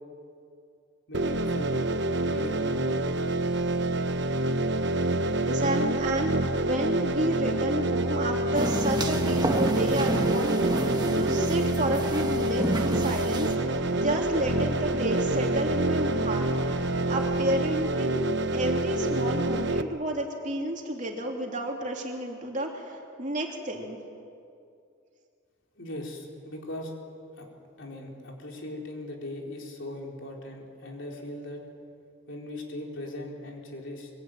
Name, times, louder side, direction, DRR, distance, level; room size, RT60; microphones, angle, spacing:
voice 1, 1.1-1.8 2.3-3.5 25.8-26.9 27.4-27.5 27.8-31.6 32.3-34.1, left 1 dB, 60° left, -1 dB, 4.4 m, -39 dB
sound 1, 1.1-19.8, right 1 dB, 55° right, 0.9 m, -27 dB
voice 2, 5.4-16.8 17.1-24.0, right 1 dB, 35° right, 0 dB, 3.1 m, -31 dB
sound 2, 5.9-18.7, left 1 dB, 5° left, 4.7 m, -44 dB
sound 3, 8.5-13.6, right 1 dB, 20° right, 1.5 m, -30 dB
23.5 x 23.0 x 9.3 m, 2.5 s
head